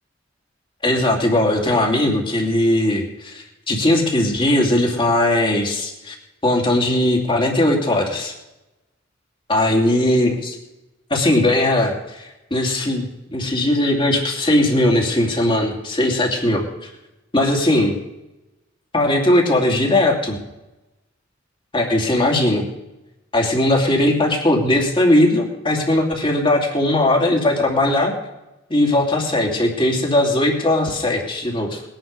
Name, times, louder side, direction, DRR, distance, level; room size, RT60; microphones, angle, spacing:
voice 1, 0.8-6.1 6.4-8.3 9.5-10.6 11.1-13.1 13.3-16.9 17.3-18.0 18.9-20.4 21.7-22.7 23.3-28.1 28.7-31.8, left 1 dB, 25° left, 1 dB, 2.7 m, -19 dB
20.5 x 10.5 x 5.3 m, 0.97 s
head